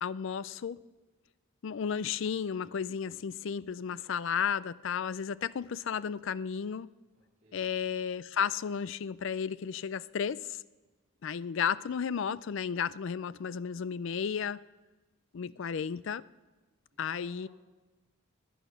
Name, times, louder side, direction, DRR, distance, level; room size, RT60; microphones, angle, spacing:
voice 1, 0.0-0.8 1.6-6.9 7.5-10.6 11.2-14.6 15.3-16.2 17.0-17.5, left 7 dB, 60° left, 18 dB, 0.4 m, -33 dB
voice 2, 7.1-7.7 15.4-15.5 16.9-17.5, equal, 40° right, -9 dB, 4.3 m, -60 dB
19.0 x 10.0 x 6.3 m, 1.2 s
head